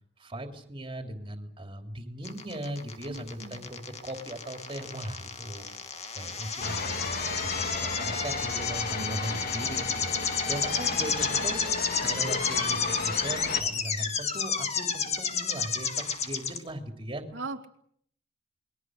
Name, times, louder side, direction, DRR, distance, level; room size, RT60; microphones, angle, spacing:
voice 1, 0.2-10.2 10.5-17.2, right 1 dB, 30° right, 5 dB, 3.4 m, -39 dB
sound 1, 2.2-16.6, left 5 dB, 35° left, 2.4 m, -31 dB
voice 2, 3.1-3.6 8.9-9.5 17.3-17.7, right 3 dB, 80° right, 2 dB, 2.7 m, -40 dB
sound 2, 6.6-13.6, left 3 dB, 55° left, 2.2 m, -34 dB
29.0 x 22.0 x 6.6 m, 0.65 s
head